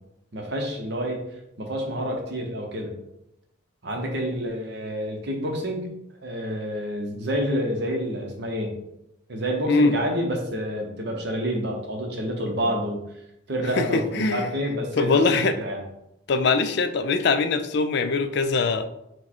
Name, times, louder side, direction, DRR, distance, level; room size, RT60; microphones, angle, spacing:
voice 1, 0.3-1.2 1.6-2.9 3.8-6.0 6.2-8.8 9.3-13.0 13.5-15.8, equal, 55° right, 1 dB, 0.8 m, -28 dB
voice 2, 9.7-10.0 13.8-14.5 15.0-15.6 16.3-18.9, left 4 dB, 55° left, 9 dB, 0.3 m, -22 dB
4.7 x 2.2 x 4.3 m, 0.84 s
head